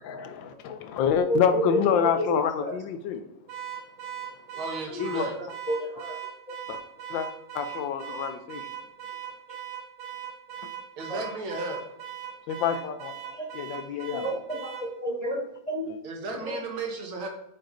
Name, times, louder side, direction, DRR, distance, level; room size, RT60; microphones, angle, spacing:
voice 1, 0.0-3.2 5.0-5.3 6.7-6.8 7.1-7.3 7.5-8.7 12.5-14.2, left 8 dB, 75° left, 8 dB, 1.2 m, -27 dB
voice 2, 1.2-1.9 2.2-2.3 2.6-2.8 4.9-5.1 5.4-6.2 6.5-6.6 11.1-11.2 13.3-13.5 13.9-15.9 16.4-16.6, equal, 30° left, -3 dB, 0.7 m, -30 dB
Car / Alarm, 3.5-14.9, right 9 dB, 60° right, 1.6 m, -39 dB
voice 3, 4.6-5.3 11.0-11.8 16.0-17.3, right 3 dB, 85° right, 2 dB, 2.1 m, -34 dB
8.3 x 5.7 x 2.6 m, 0.81 s
omnidirectional pair, 2.2 m